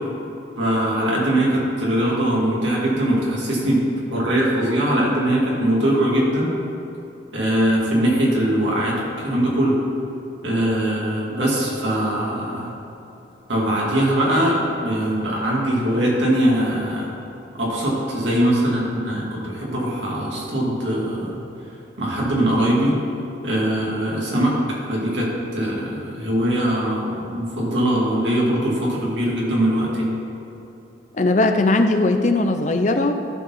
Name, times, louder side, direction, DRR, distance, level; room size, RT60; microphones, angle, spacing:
voice 1, 0.6-6.5 7.3-9.7 10.4-12.7 13.5-17.1 17.6-21.4 22.0-23.0 23.4-24.6 24.9-30.1, right 1 dB, 80° right, -4 dB, 2.5 m, -21 dB
voice 2, 31.1-33.1, left 2 dB, 40° left, 6 dB, 0.6 m, -18 dB
13.5 x 4.8 x 5.8 m, 2.8 s
head